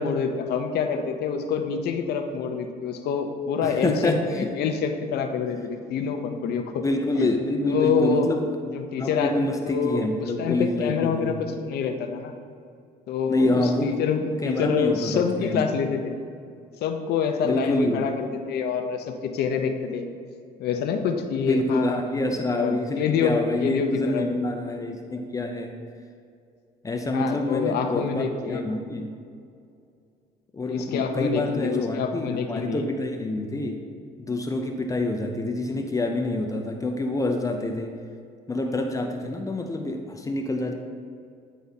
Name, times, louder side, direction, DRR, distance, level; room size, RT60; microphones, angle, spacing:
voice 1, 0.0-6.8 7.1-7.3 7.6-8.3 8.7-9.3 9.7-12.3 13.1-16.1 16.8-20.1 20.6-22.0 22.5-24.2 27.1-28.6 30.7-32.9, left 6 dB, 70° left, 5 dB, 0.8 m, -26 dB
voice 2, 3.6-4.6 6.8-8.5 9.0-11.4 13.3-14.0 14.4-15.7 17.4-18.1 21.4-25.7 26.8-29.1 30.5-33.8 34.2-38.0 38.5-40.7, left 2 dB, 20° left, 3 dB, 0.6 m, -27 dB
9.9 x 4.1 x 4.0 m, 2.3 s
cardioid pair, 110°, 17 cm